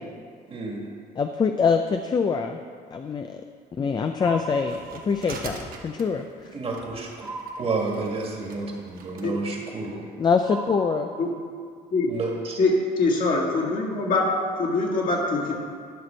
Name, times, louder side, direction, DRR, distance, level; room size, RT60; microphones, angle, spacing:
voice 1, 0.5-0.9 6.5-7.3 7.6-10.1 12.0-12.6, right 3 dB, 35° right, -1 dB, 1.7 m, -30 dB
voice 2, 1.2-2.6 2.9-3.4 3.8-6.6 10.2-11.1, left 5 dB, 25° left, 6 dB, 0.4 m, -24 dB
sound 1, 4.2-5.4 7.2-8.4 10.4-11.7, right 3 dB, 10° right, 1.3 m, -38 dB
sound 2, 4.4-9.3, right 4 dB, 60° right, 1.1 m, -43 dB
voice 3, 12.6-15.5, left 3 dB, 55° left, -2 dB, 2.1 m, -23 dB
11.5 x 6.0 x 4.4 m, 2.1 s
cardioid pair, 110°, 17 cm